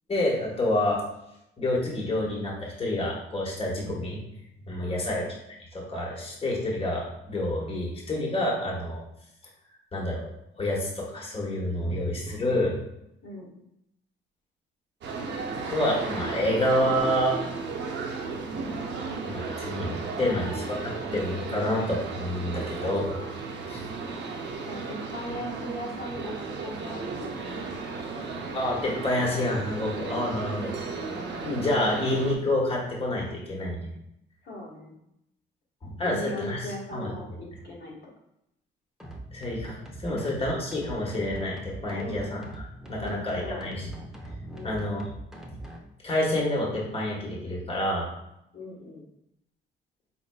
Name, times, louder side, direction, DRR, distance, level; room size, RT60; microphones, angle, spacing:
voice 1, 0.1-1.0 1.6-4.2 4.7-5.2 5.7-9.0 9.9-10.3 10.6-12.8 15.7-17.4 19.2-23.2 23.6-23.8 25.3-25.4 28.5-30.7 31.2-33.9 35.8-37.1 39.3-43.9 44.3-45.0 46.0-48.1, left 1 dB, 30° left, -3 dB, 1.2 m, -28 dB
voice 2, 13.2-13.5 20.3-20.5 21.5-21.6 22.5-23.1 24.7-26.4 26.6-27.4 34.4-35.0 36.0-38.0 40.0-40.2 41.9-42.3 43.0-43.7 44.5-44.8 48.5-49.0, left 1 dB, 60° left, -3 dB, 1.3 m, -38 dB
sound 1, 15.0-32.3, right 4 dB, 60° right, 0.7 m, -34 dB
sound 2, 39.0-45.8, right 1 dB, ahead, 0.7 m, -42 dB
4.3 x 4.0 x 2.2 m, 0.81 s
cardioid pair, 90°, 20 cm